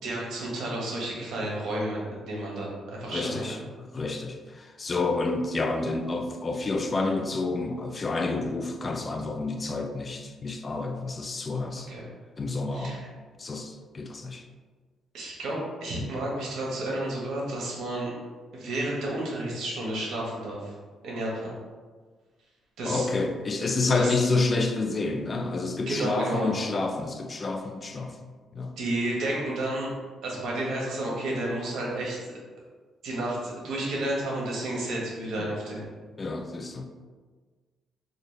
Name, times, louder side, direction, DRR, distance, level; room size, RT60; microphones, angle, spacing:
voice 1, 0.0-3.6 11.9-12.1 12.7-13.1 15.1-18.1 18.5-20.7 21.0-21.5 22.8-23.1 23.9-24.1 25.9-26.5 28.8-29.9 30.2-32.3 33.0-35.8, right 1 dB, 75° right, -4 dB, 1.2 m, -31 dB
voice 2, 3.1-11.9 12.4-13.0 13.4-14.4 22.8-28.1 28.5-28.7 35.4-35.5 36.2-36.8, left 3 dB, 35° left, 6 dB, 0.4 m, -29 dB
4.1 x 2.4 x 3.2 m, 1.4 s
cardioid pair, 90°, 0 cm